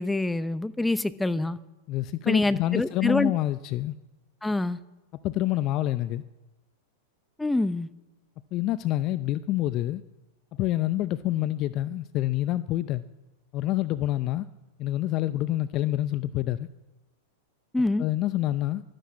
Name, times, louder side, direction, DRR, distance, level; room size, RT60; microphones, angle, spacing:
voice 1, 0.0-1.6 2.3-3.3 4.4-4.8 7.4-7.9 17.7-18.0, left 2 dB, 5° left, 0.8 m, -26 dB
voice 2, 1.9-4.0 5.2-6.2 8.5-10.0 10.5-13.0 13.5-14.5 14.8-16.7 18.0-18.8, left 14 dB, 45° left, 0.6 m, -27 dB
13.0 x 12.5 x 8.7 m
hypercardioid pair, 105°, 0 cm